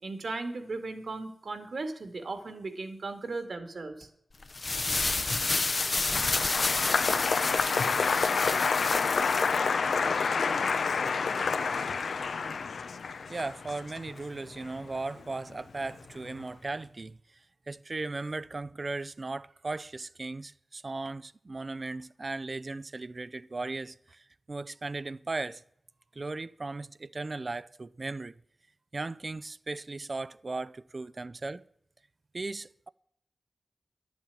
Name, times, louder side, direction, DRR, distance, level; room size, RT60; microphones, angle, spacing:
voice 1, 0.0-4.1, right 3 dB, 65° right, 1.9 m, -37 dB
sound 1, 4.4-9.6, left 3 dB, 45° left, 0.7 m, -30 dB
Applause, 5.2-15.6 15.8-16.4, left 5 dB, 90° left, 0.6 m, -29 dB
voice 2, 13.3-17.2 17.7-25.6 26.1-28.4 28.9-31.6 32.3-32.9, right 3 dB, 40° right, 0.4 m, -37 dB
11.5 x 7.2 x 9.1 m
wide cardioid pair, 90°, 0 cm